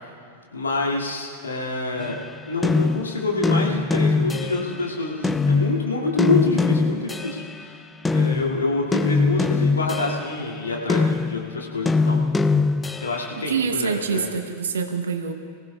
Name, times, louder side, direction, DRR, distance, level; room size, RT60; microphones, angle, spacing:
voice 1, 0.5-2.2 2.5-7.7 8.1-12.2 13.0-14.3, left 3 dB, 75° left, -2 dB, 2.4 m, -27 dB
sound 1, 2.0-4.8 5.2-7.6 8.0-13.3, left 4 dB, 10° left, 0.4 m, -23 dB
voice 2, 13.4-15.3, right 6 dB, 65° right, 6 dB, 1.1 m, -26 dB
24.0 x 16.0 x 2.4 m, 2.1 s
figure-of-eight pair, 90°, 0 cm